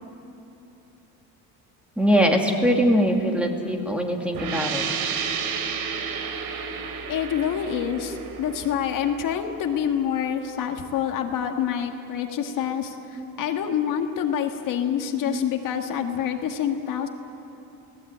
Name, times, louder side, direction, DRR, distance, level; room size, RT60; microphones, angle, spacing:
voice 1, 2.0-4.8 11.5-11.6 12.3-12.4 13.2-13.3 15.2-15.4, equal, 5° right, 1 dB, 2.3 m, -22 dB
sound 1, 4.3-9.8, right 6 dB, 80° right, 2.9 m, -31 dB
voice 2, 7.1-17.1, left 8 dB, 60° left, 4 dB, 1.9 m, -27 dB
30.0 x 18.5 x 8.8 m, 3.0 s
cardioid pair, 155°, 36 cm